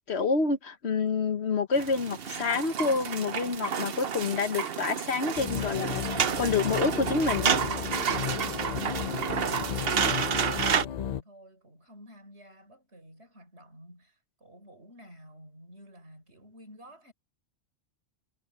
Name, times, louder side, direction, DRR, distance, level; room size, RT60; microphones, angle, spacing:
voice 1, 0.0-7.6, left 4 dB, 75° left, 1.5 m, -28 dB
sound 1, 1.7-10.9, right 7 dB, 65° right, 1.0 m, -30 dB
sound 2, 5.4-11.2, left 9 dB, 55° left, 0.5 m, -34 dB
voice 2, 8.2-17.1, equal, 80° right, 6.6 m, -51 dB
omnidirectional pair, 1.1 m